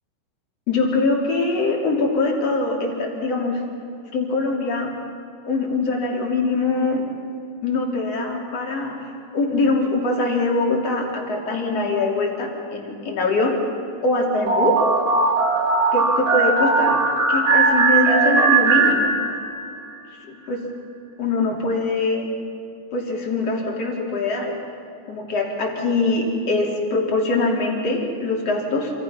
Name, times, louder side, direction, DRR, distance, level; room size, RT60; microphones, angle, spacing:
voice 1, 0.7-3.6 4.1-4.9 5.4-7.0 7.6-9.0 9.3-13.6 14.0-14.8 15.9-19.2 20.3-20.6 21.2-22.3 22.9-24.5 25.1-28.9, left 3 dB, 40° left, 0 dB, 3.6 m, -23 dB
sound 1, 14.5-19.6, right 4 dB, 80° right, 6.7 m, -18 dB
27.5 x 27.0 x 5.8 m, 2.6 s
omnidirectional pair, 5.2 m